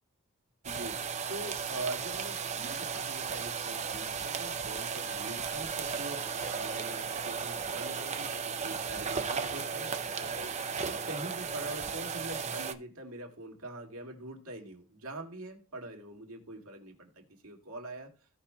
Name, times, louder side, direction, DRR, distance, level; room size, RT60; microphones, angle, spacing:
sound 1, 0.6-12.7, right 6 dB, 30° right, 0.6 m, -35 dB
voice 1, 0.6-18.1, right 2 dB, 75° right, 2.2 m, -44 dB
16.5 x 5.6 x 2.4 m
head